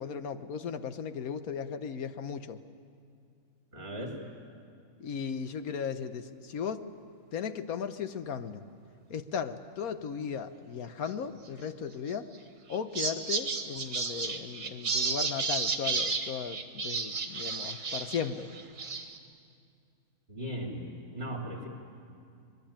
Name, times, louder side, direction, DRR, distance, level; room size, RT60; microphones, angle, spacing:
voice 1, 0.0-2.6 5.0-6.9 7.3-8.6 9.1-12.3 12.7-18.5, left 7 dB, 75° left, 10 dB, 1.5 m, -36 dB
voice 2, 3.7-4.2 20.3-20.9 21.1-21.7, right 1 dB, 45° right, 0 dB, 3.4 m, -37 dB
sound 1, 12.1-12.4 12.7-18.3 18.5-19.2, right 4 dB, 70° right, 2.1 m, -32 dB
26.0 x 21.5 x 8.8 m, 2.4 s
omnidirectional pair, 1.5 m